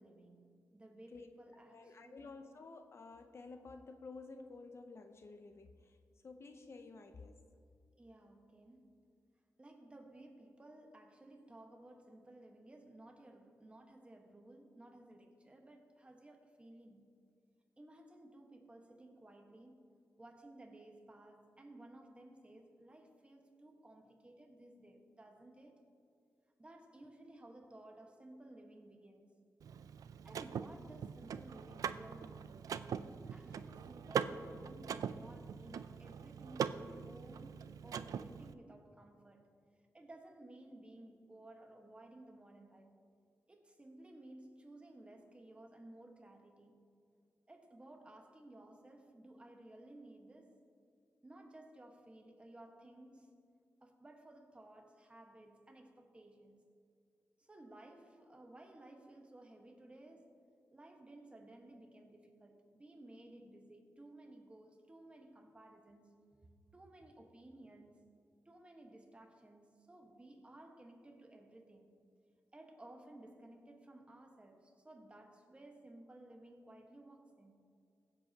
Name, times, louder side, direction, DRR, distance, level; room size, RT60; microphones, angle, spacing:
voice 1, 0.0-2.3 8.0-9.0 9.6-17.1 17.8-19.9 20.2-25.8 26.6-29.3 30.2-32.6 33.3-39.5 39.9-42.9 43.5-46.8 47.5-50.6 51.2-53.4 53.8-56.6 57.4-60.4 60.7-68.1 68.4-72.0 72.5-77.7, right 1 dB, 20° right, 1.3 m, -57 dB
voice 2, 1.7-6.0 6.2-7.5, left 3 dB, 50° left, 0.6 m, -52 dB
Car / Mechanisms, 29.6-38.5, right 7 dB, 80° right, 0.4 m, -42 dB
22.0 x 7.8 x 2.8 m
wide cardioid pair, 110°, 6 cm